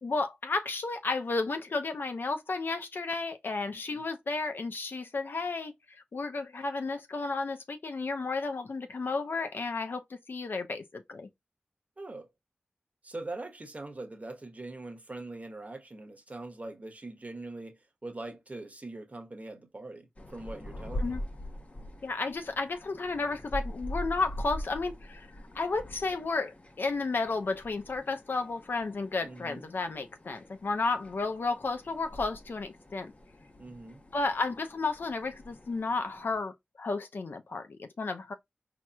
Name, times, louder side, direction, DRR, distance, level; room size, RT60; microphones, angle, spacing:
voice 1, 0.0-11.3 21.0-21.2 22.0-25.3 25.5-33.1 34.1-38.3, left 3 dB, 80° left, 0.7 m, -32 dB
voice 2, 12.0-12.3 13.0-21.2 29.2-29.7 33.6-34.0, right 2 dB, 45° right, 1.2 m, -42 dB
sound 1, 20.2-36.4, left 1 dB, 40° left, 0.9 m, -43 dB
4.5 x 2.9 x 2.4 m
wide cardioid pair, 50°, 4 cm